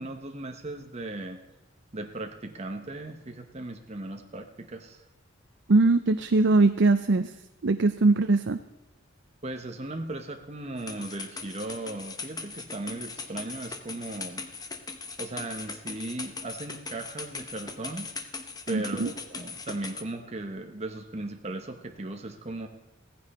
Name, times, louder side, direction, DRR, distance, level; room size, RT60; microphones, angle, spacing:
voice 1, 0.0-1.4 1.9-5.0 9.4-14.5 15.2-18.1 18.7-22.7, right 2 dB, 35° right, 4 dB, 1.0 m, -37 dB
voice 2, 5.7-7.3 7.6-8.6 18.7-19.1, right 3 dB, 60° right, 9 dB, 0.5 m, -21 dB
sound 1, 10.8-20.0, left 4 dB, 20° left, 0.9 m, -39 dB
16.5 x 15.0 x 4.3 m, 1.1 s
head